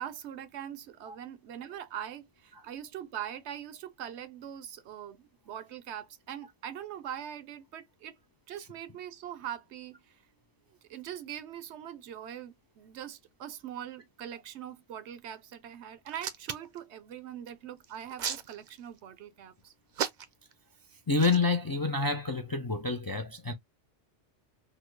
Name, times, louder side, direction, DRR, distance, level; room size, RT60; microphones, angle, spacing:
voice 1, 0.0-8.2 8.5-10.0 10.9-19.7, right 10 dB, 80° right, 0.9 m, -42 dB
Hands, 16.1-16.8 17.8-19.0 19.9-20.5 21.1-21.4, right 7 dB, 55° right, 0.6 m, -34 dB
voice 2, 20.9-23.5, left 3 dB, 35° left, 0.3 m, -28 dB
3.7 x 2.0 x 3.1 m
omnidirectional pair, 1.1 m